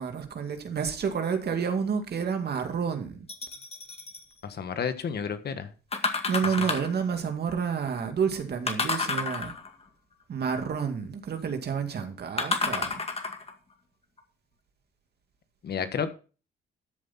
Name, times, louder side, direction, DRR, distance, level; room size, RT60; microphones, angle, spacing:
voice 1, 0.0-3.3 6.3-9.5 10.3-13.0, right 6 dB, 55° right, 2.3 m, -29 dB
sound 1, 3.3-4.2 5.9-7.0 8.7-9.8 12.4-13.5 14.2-14.3, left 4 dB, 30° left, 1.9 m, -30 dB
voice 2, 4.4-5.7 15.6-16.1, left 6 dB, 55° left, 1.5 m, -31 dB
13.5 x 7.8 x 4.2 m
cardioid pair, 90°, 20 cm